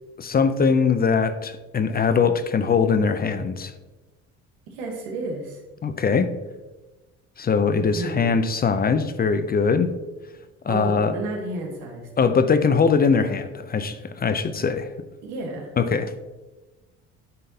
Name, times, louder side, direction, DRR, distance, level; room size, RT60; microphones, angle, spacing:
voice 1, 0.2-3.7 5.8-6.3 7.4-9.9 10.6-11.1 12.2-14.9 15.8-16.1, left 5 dB, 25° left, 11 dB, 0.4 m, -21 dB
voice 2, 4.7-5.6 7.8-8.4 10.7-12.4 14.6-14.7 15.2-15.7, right 2 dB, 85° right, 1 dB, 1.3 m, -32 dB
9.3 x 3.8 x 2.7 m, 1.2 s
supercardioid pair, 65°, 36 cm